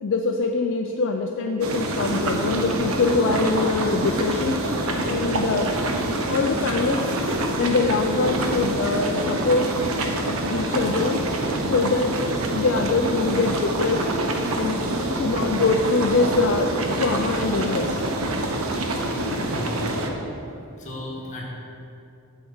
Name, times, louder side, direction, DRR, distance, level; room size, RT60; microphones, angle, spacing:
voice 1, 0.0-4.6 5.0-5.7 6.3-7.1 7.6-9.7 10.5-11.2 11.7-12.2 12.5-14.1 14.6-14.8 15.1-16.7 17.0-18.1, left 4 dB, 60° left, 3 dB, 0.4 m, -23 dB
sound 1, 1.6-20.1, right 1 dB, 75° right, 0.8 m, -26 dB
voice 2, 14.7-15.1 19.4-19.9 20.8-21.4, left 1 dB, 35° left, -3 dB, 1.7 m, -36 dB
7.8 x 4.6 x 7.2 m, 2.7 s
head